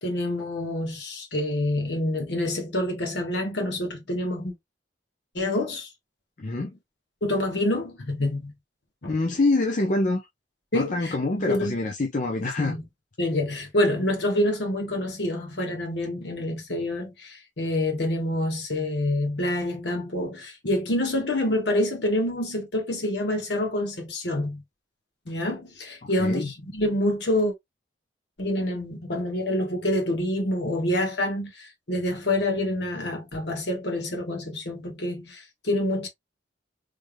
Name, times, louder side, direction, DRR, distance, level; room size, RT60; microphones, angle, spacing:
voice 1, 0.0-4.5 5.3-5.9 7.2-8.5 9.0-9.1 10.7-11.8 12.6-12.8 13.2-24.6 25.3-27.5 28.4-36.1, left 1 dB, 65° left, 1.3 m, -27 dB
voice 2, 6.4-6.8 9.1-10.2 10.7-12.8 26.0-26.5, left 2 dB, 40° left, 0.6 m, -26 dB
3.3 x 3.2 x 2.2 m
head